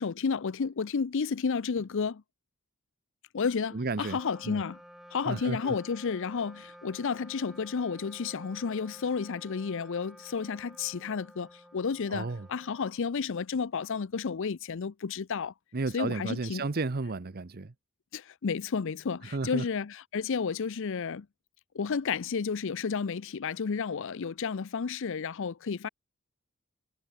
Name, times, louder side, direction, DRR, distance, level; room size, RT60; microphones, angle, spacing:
voice 1, 0.0-2.2 3.3-4.8 5.1-15.5 15.9-16.6 18.1-21.3 21.7-25.9, left 5 dB, 60° left, 0.5 m, -32 dB
voice 2, 3.7-4.2 4.4-4.6 5.3-5.8 12.1-12.5 15.7-17.7 19.2-19.7, right 3 dB, 45° right, 0.8 m, -33 dB
Wind instrument woodwind instrument, 3.8-13.5, equal, ahead, 1.0 m, -53 dB
head